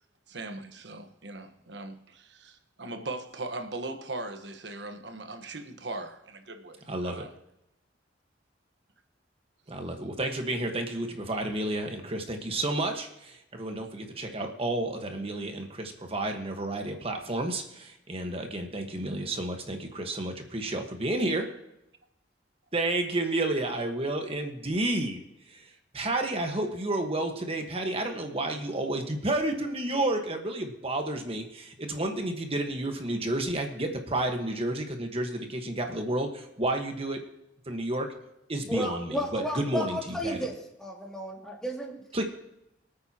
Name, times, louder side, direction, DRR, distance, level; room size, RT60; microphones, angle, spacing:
voice 1, 0.3-7.3, right 2 dB, 65° right, 1.3 m, -39 dB
voice 2, 6.9-7.2 9.7-21.4 22.7-25.2 25.5-25.7 25.9-37.2 37.7-38.1 38.5-40.4 42.1-42.2, right 1 dB, 30° right, 1.4 m, -31 dB
voice 3, 38.7-40.5 40.8-42.0, equal, 5° left, 2.5 m, -33 dB
24.5 x 8.9 x 2.9 m
head